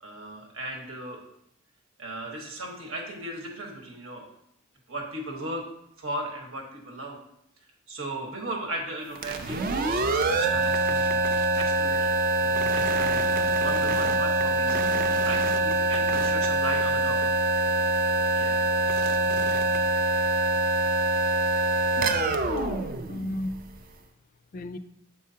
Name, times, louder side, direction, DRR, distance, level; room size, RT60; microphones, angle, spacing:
voice 1, 0.0-1.2 2.0-4.3 4.9-5.6 6.0-7.2 7.9-11.3 11.6-13.3 13.6-14.8 15.2-17.3 18.3-18.6, right 1 dB, 80° right, 1 dB, 1.3 m, -36 dB
sound 1, 9.1-23.8, right 2 dB, 45° right, 0.4 m, -24 dB
voice 2, 22.0-23.7 24.5-24.8, left 2 dB, 40° left, 10 dB, 0.3 m, -35 dB
7.3 x 4.7 x 2.8 m, 0.76 s
head